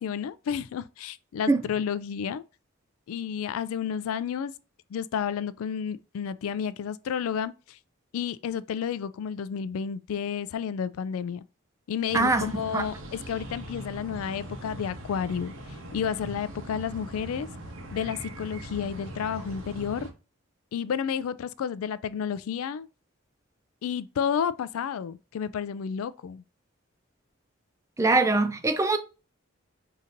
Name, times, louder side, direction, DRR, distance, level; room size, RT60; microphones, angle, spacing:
voice 1, 0.0-2.4 3.1-4.5 4.9-7.8 8.1-11.4 11.9-15.5 15.9-17.5 17.9-20.1 20.7-22.9 23.8-26.4, left 7 dB, 80° left, 0.3 m, -31 dB
sound 1, 12.1-20.1, right 1 dB, 70° right, 1.0 m, -41 dB
voice 2, 28.0-29.0, right 3 dB, 15° right, 0.3 m, -22 dB
5.0 x 2.8 x 2.6 m
head